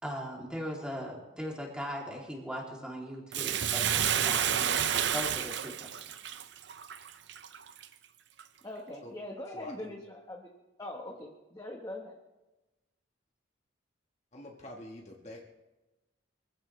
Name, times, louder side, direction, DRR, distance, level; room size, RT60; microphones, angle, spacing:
voice 1, 0.0-6.0, equal, 5° right, -2 dB, 2.9 m, -39 dB
Bathtub (filling or washing), 3.3-7.9 8.4-8.5, right 9 dB, 60° right, 0.7 m, -30 dB
voice 2, 8.6-10.5 10.8-12.2, left 1 dB, 15° left, 0 dB, 1.2 m, -42 dB
voice 3, 9.5-10.0 14.3-15.5, left 1 dB, 35° left, 0 dB, 1.6 m, -46 dB
24.5 x 15.5 x 3.3 m, 1.1 s
head